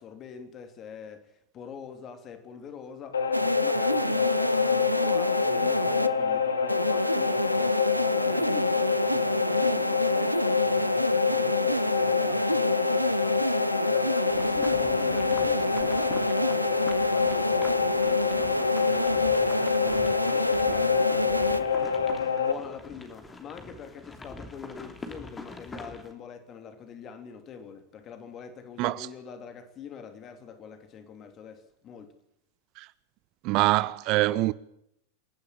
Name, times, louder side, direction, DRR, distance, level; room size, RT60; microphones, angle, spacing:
voice 1, 0.0-3.2 3.6-7.8 8.2-12.6 13.1-13.6 13.9-21.5 22.4-32.1, left 6 dB, 30° left, 3.2 m, -44 dB
sound 1, 3.1-22.5, left 6 dB, 70° left, 1.7 m, -26 dB
sound 2, 3.3-6.1 6.7-21.6, right 1 dB, 85° right, 0.7 m, -29 dB
sound 3, 14.3-26.1, left 2 dB, 15° left, 2.9 m, -45 dB
voice 2, 33.4-34.5, right 19 dB, 40° right, 0.7 m, -24 dB
28.0 x 11.5 x 8.8 m
figure-of-eight pair, 90°, 0 cm